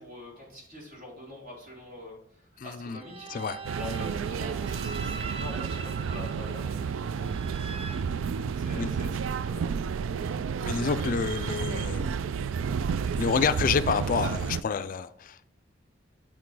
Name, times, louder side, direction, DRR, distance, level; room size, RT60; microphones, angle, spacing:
voice 1, 0.0-3.3 3.8-7.8 8.6-9.7 11.2-11.6, left 2 dB, 55° right, 4.0 m, -45 dB
voice 2, 2.6-3.0 3.3-3.6 8.8-8.9 10.6-12.1 13.2-15.5, left 5 dB, 45° left, 0.4 m, -28 dB
sound 1, 2.9-9.0, right 4 dB, 30° right, 0.6 m, -43 dB
sound 2, 3.6-14.6, right 6 dB, 80° right, 0.4 m, -31 dB
8.8 x 6.0 x 4.7 m
head